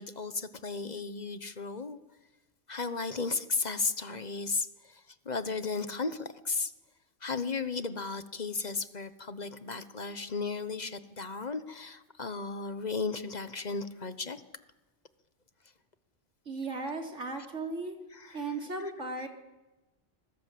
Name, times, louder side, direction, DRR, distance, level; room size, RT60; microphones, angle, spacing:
voice 1, 0.0-2.0 2.7-6.7 7.2-14.4 18.1-18.4, left 4 dB, 35° left, 12 dB, 1.2 m, -35 dB
voice 2, 16.5-18.0 18.3-19.3, right 3 dB, 75° right, 3 dB, 3.6 m, -36 dB
26.5 x 20.5 x 7.7 m, 1.1 s
omnidirectional pair, 1.2 m